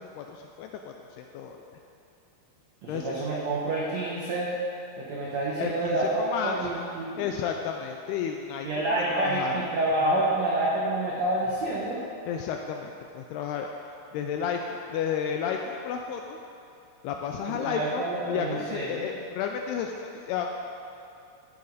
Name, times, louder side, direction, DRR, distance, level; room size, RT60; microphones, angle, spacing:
voice 1, 0.0-1.6 2.9-3.2 5.6-6.6 7.2-8.7 9.1-9.5 10.1-10.2 12.3-13.7 14.1-16.4 17.0-20.5, left 7 dB, 85° left, 3 dB, 2.3 m, -32 dB
voice 2, 2.8-4.5 5.0-7.2 8.6-12.0 17.5-19.0, right 2 dB, 80° right, -5 dB, 1.5 m, -28 dB
13.5 x 8.8 x 4.0 m, 2.7 s
omnidirectional pair, 5.1 m